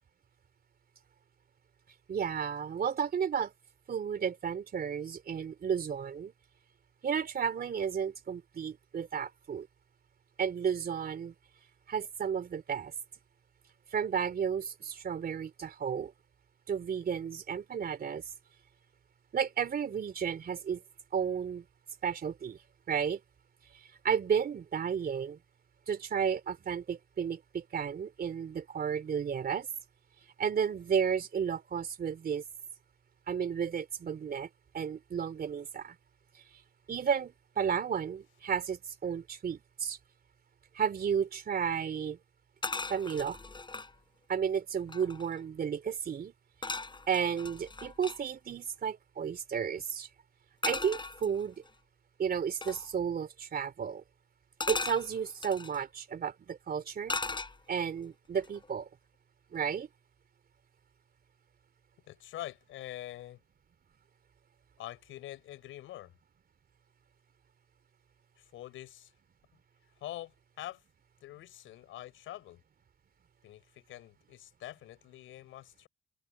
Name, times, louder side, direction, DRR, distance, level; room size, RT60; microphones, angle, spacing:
voice 1, 2.1-3.5 3.9-6.3 7.0-9.7 10.4-11.3 11.9-12.9 13.9-16.1 16.7-18.2 19.3-20.8 21.1-21.7 22.0-22.6 22.9-23.2 24.0-25.4 25.9-29.7 30.4-32.4 33.3-34.5 34.7-36.0 36.9-40.0 40.7-42.2 42.9-43.4 44.3-46.3 47.1-50.1 50.6-51.6 52.2-54.0 54.7-57.2 57.7-58.9 59.5-59.9, right 7 dB, 50° right, 3.4 m, -33 dB
sound 1, 42.6-43.9 44.5-44.6 44.8-45.4 46.6-48.2 50.6-51.7 52.6-52.9 54.6-55.8 57.1-57.9 58.4-58.7, left 3 dB, 25° left, 6.8 m, -38 dB
voice 2, 62.1-63.4 64.8-66.1 68.4-69.1 70.0-70.8 71.2-72.6 73.4-75.9, left 14 dB, 85° left, 7.6 m, -45 dB
cardioid pair, 90°, 20 cm